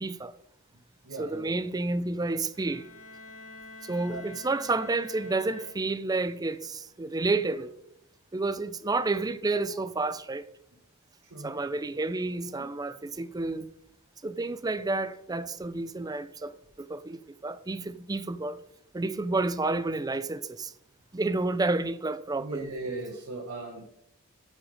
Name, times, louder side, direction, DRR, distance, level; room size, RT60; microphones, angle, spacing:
voice 1, 0.0-0.3 1.2-2.9 3.8-7.7 8.3-10.5 11.4-13.7 14.2-18.6 18.9-20.7 21.1-22.7, right 3 dB, 15° right, 0.5 m, -30 dB
voice 2, 1.0-1.7 4.1-4.3 11.2-11.6 12.6-12.7 22.3-23.9, right 2 dB, 80° right, 1.5 m, -38 dB
Bowed string instrument, 2.5-6.2, left 2 dB, 80° left, 1.5 m, -47 dB
9.0 x 7.4 x 4.9 m
head